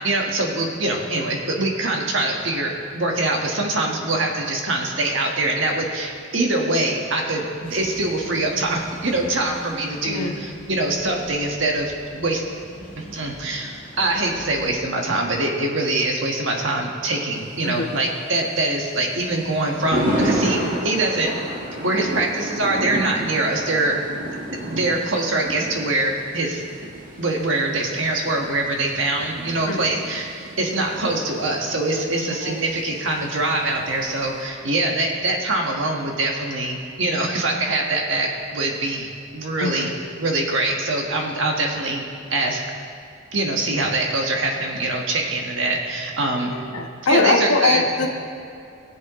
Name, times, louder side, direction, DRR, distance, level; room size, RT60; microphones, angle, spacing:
voice 1, 0.0-12.4 13.0-21.3 21.8-24.3 24.6-26.6 27.2-39.9 40.2-42.0 42.3-42.6 43.3-46.5 47.1-47.8, right 2 dB, 60° right, 0 dB, 1.5 m, -24 dB
sound 1, 7.6-14.8, equal, 5° left, 2.2 m, -42 dB
voice 2, 10.0-10.3 17.6-17.9 29.7-29.8 32.3-32.6 39.6-39.9 46.7-48.1, left 3 dB, 90° left, 2 dB, 1.1 m, -22 dB
Thunder, 17.3-34.4, right 1 dB, 40° right, 1.6 m, -31 dB
19.5 x 7.7 x 3.1 m, 2.6 s
head